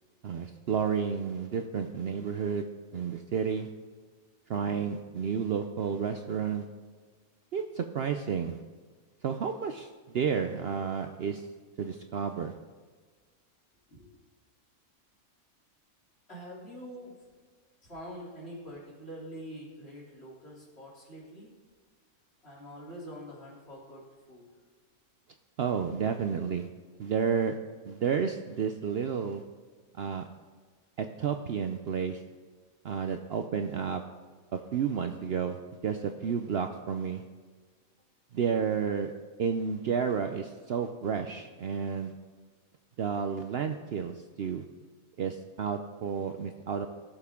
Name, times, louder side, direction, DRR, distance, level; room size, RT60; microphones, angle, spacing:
voice 1, 0.2-2.7 2.9-3.7 4.5-6.6 7.5-8.6 9.2-11.5 11.8-12.5 25.6-26.7 27.0-27.6 27.8-29.4 30.0-30.3 31.0-32.2 32.8-34.0 34.5-37.2 38.3-39.1 39.4-42.1 43.0-44.6 45.2-46.9, right 6 dB, 60° right, 6 dB, 0.7 m, -31 dB
voice 2, 16.3-17.2 17.8-21.5 22.4-24.5, equal, 50° left, -5 dB, 3.4 m, -45 dB
17.5 x 7.0 x 3.6 m, 1.5 s
omnidirectional pair, 1.4 m